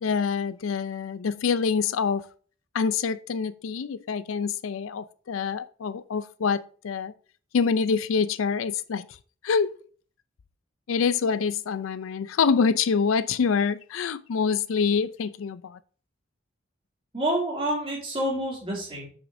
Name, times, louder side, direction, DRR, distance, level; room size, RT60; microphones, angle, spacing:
voice 1, 0.0-2.2 2.7-7.1 7.5-9.1 9.4-9.7 10.9-15.8, left 5 dB, 75° left, 0.4 m, -26 dB
voice 2, 17.1-19.1, right 1 dB, 25° right, 2.5 m, -28 dB
8.1 x 6.1 x 2.6 m
head